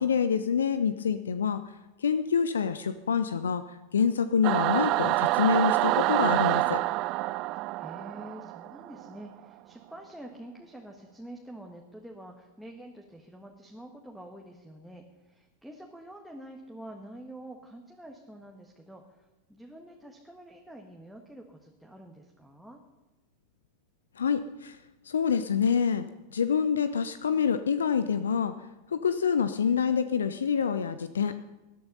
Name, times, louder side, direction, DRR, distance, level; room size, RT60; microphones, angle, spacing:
voice 1, 0.0-1.6 2.0-6.8 24.2-24.8 25.0-28.5 28.9-31.3, left 6 dB, 70° left, 12 dB, 0.7 m, -27 dB
Singing / Musical instrument, 4.4-9.1, right 19 dB, 40° right, 0.4 m, -27 dB
voice 2, 7.8-22.8, right 1 dB, ahead, 0 dB, 1.7 m, -47 dB
20.5 x 12.5 x 5.5 m, 1.1 s
figure-of-eight pair, 90°, 0 cm